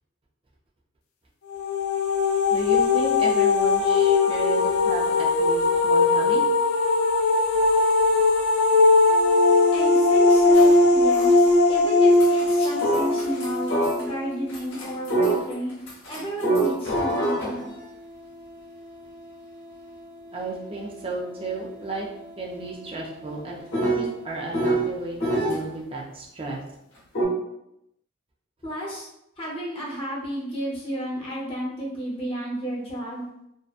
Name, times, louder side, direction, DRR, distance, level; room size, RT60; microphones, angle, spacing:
sound 1, 1.5-14.4, left 3 dB, 80° left, 0.4 m, -19 dB
voice 1, 2.5-6.4 20.3-22.1 22.4-26.6, right 3 dB, 25° right, -3 dB, 0.4 m, -33 dB
voice 2, 9.7-11.3 11.7-15.7 16.1-17.7 28.6-29.1 29.4-33.2, right 1 dB, 25° left, -6 dB, 0.8 m, -32 dB
sound 2, 10.5-10.8 11.1-11.5 12.1-14.1 14.5-25.6 27.1-27.3, right 1 dB, 55° left, 0.9 m, -29 dB
2.7 x 2.1 x 2.4 m, 0.82 s
head